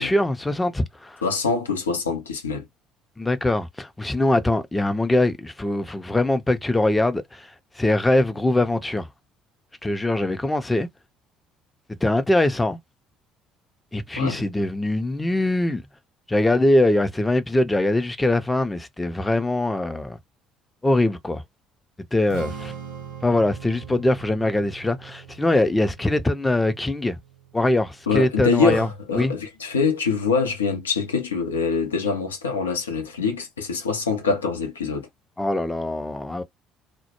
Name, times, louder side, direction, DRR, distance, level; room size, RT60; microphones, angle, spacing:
voice 1, 0.0-1.2 3.2-7.5 7.8-9.1 9.8-10.9 11.9-12.8 13.9-15.8 16.3-20.2 20.8-21.4 22.1-22.7 23.2-27.2 27.5-28.9 29.1-29.3 35.4-36.4, left 1 dB, 15° left, 0.5 m, -22 dB
voice 2, 1.2-2.7 14.2-14.4 28.1-35.1, left 5 dB, 85° left, 0.5 m, -24 dB
Strum, 22.3-28.5, right 7 dB, 70° right, 0.8 m, -41 dB
2.1 x 2.0 x 2.9 m
figure-of-eight pair, 55°, 0 cm